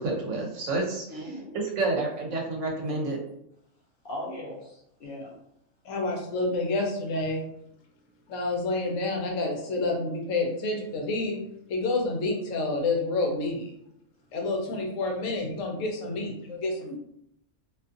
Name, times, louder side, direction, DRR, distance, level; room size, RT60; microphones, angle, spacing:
voice 1, 0.0-3.2, right 2 dB, 70° right, 0 dB, 0.9 m, -29 dB
voice 2, 1.1-1.6 2.9-3.0 4.0-5.4 14.7-14.8, left 1 dB, 55° left, -4 dB, 0.7 m, -39 dB
voice 3, 5.8-7.4 8.3-11.4 11.7-13.7 14.3-16.9, left 2 dB, 75° left, 1 dB, 1.0 m, -28 dB
2.5 x 2.4 x 2.4 m, 0.75 s
omnidirectional pair, 1.4 m